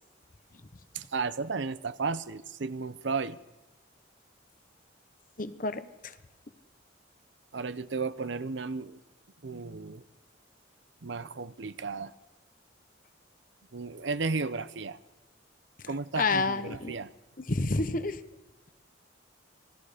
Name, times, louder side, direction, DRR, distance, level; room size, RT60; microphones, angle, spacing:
voice 1, 0.9-3.4 7.5-9.0 9.4-10.0 11.0-12.1 13.7-15.0 15.9-17.1, right 4 dB, 70° right, 0.7 m, -34 dB
voice 2, 5.4-5.8 16.2-16.9 17.4-18.2, left 3 dB, 45° left, 1.0 m, -29 dB
27.0 x 19.0 x 5.1 m
head